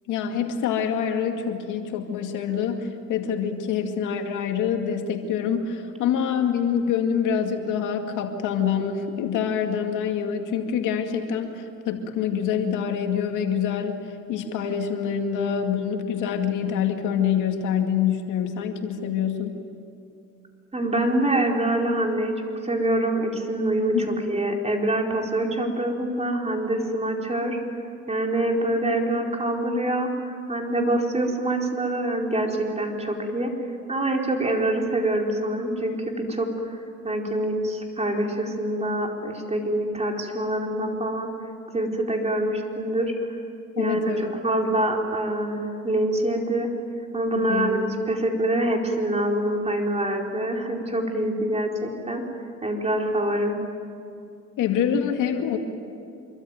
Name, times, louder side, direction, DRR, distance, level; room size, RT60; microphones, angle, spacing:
voice 1, 0.1-14.0 14.3-19.6 23.9-24.1 43.8-44.3 47.3-47.7 54.6-55.6, left 8 dB, 90° left, 4 dB, 2.3 m, -26 dB
voice 2, 20.7-22.3 22.6-27.6 28.1-33.5 33.9-36.8 37.0-41.3 41.7-43.4 43.7-46.7 47.1-52.2 52.6-53.6, right 1 dB, 20° right, 1 dB, 4.6 m, -25 dB
26.5 x 24.0 x 9.2 m, 2.5 s
cardioid pair, 90°, 30 cm